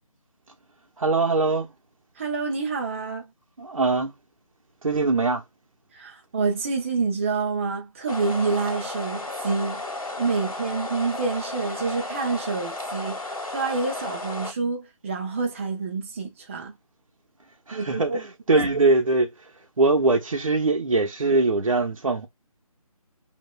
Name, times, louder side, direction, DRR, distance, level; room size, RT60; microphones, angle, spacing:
voice 1, 1.0-1.7 3.6-4.1 4.8-5.4 17.7-19.3 19.8-22.3, right 3 dB, 60° right, 1.0 m, -22 dB
voice 2, 2.2-3.3 5.9-9.8 10.2-13.2 13.5-16.7 17.7-18.2 18.5-18.7, right 4 dB, 20° right, 0.7 m, -27 dB
sound 1, 8.1-14.5, left 2 dB, 70° left, 1.3 m, -33 dB
5.5 x 2.6 x 2.3 m
figure-of-eight pair, 155°, 19 cm